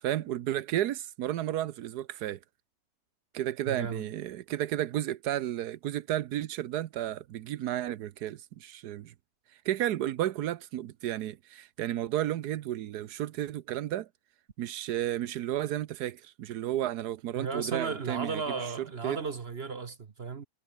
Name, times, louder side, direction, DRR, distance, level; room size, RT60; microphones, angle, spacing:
voice 1, 0.0-2.4 3.3-9.1 9.6-14.1 14.6-19.2, right 12 dB, 90° right, 1.3 m, -32 dB
voice 2, 3.6-4.1 17.4-20.5, right 4 dB, 45° right, 1.2 m, -35 dB
omnidirectional pair, 1.7 m